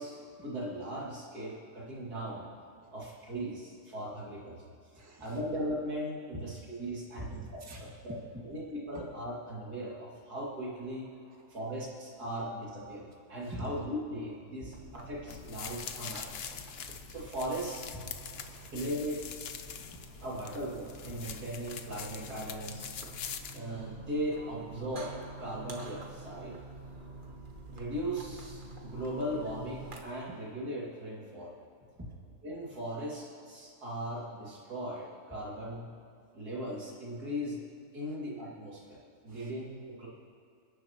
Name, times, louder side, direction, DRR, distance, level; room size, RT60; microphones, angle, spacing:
voice 1, 0.0-2.5 2.9-4.6 5.2-7.4 7.8-8.1 8.5-11.1 11.5-16.3 17.1-17.8 18.7-19.2 20.2-23.0 23.5-26.5 27.7-31.5 32.4-35.9 36.3-37.6 37.9-39.0 39.2-40.1, equal, 65° right, -5 dB, 3.1 m, -38 dB
voice 2, 4.8-5.4 6.3-6.4 7.2-7.8 11.0-11.6 12.2-12.4 13.1-13.7 18.0-18.9 19.8-20.5 21.1-21.2 23.1-23.2 24.3-24.4 31.9-32.1 38.0-38.2 39.3-39.5, equal, 10° right, -3 dB, 1.7 m, -48 dB
sound 1, 14.7-30.0, right 3 dB, 35° right, 1.3 m, -48 dB
sound 2, 15.3-23.6, left 7 dB, 60° left, 0.6 m, -44 dB
27.5 x 10.0 x 3.0 m, 2.3 s
omnidirectional pair, 1.8 m